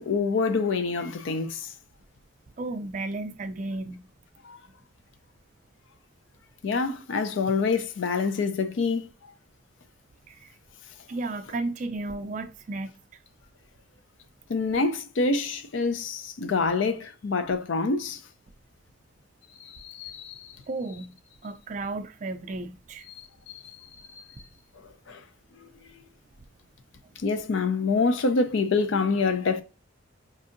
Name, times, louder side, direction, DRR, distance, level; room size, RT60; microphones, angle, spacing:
voice 1, 0.0-1.7 4.4-4.6 6.6-9.1 14.5-18.2 19.6-20.5 23.2-23.8 24.1-24.2 25.1-25.2 27.2-29.6, left 4 dB, 70° left, 0.4 m, -26 dB
voice 2, 2.6-4.1 10.3-10.5 11.1-12.9 20.7-21.1 21.4-23.1, right 2 dB, 35° right, 0.3 m, -33 dB
5.2 x 2.6 x 2.5 m
head